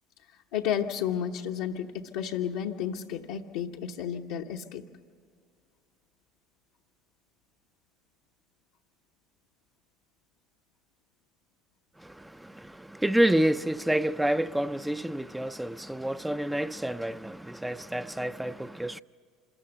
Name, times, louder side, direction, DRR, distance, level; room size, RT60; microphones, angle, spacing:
voice 1, 0.5-4.9, left 9 dB, 80° left, 0.9 m, -32 dB
voice 2, 12.0-19.0, right 1 dB, 5° right, 0.4 m, -28 dB
26.0 x 14.0 x 8.0 m
hypercardioid pair, 80°, 0 cm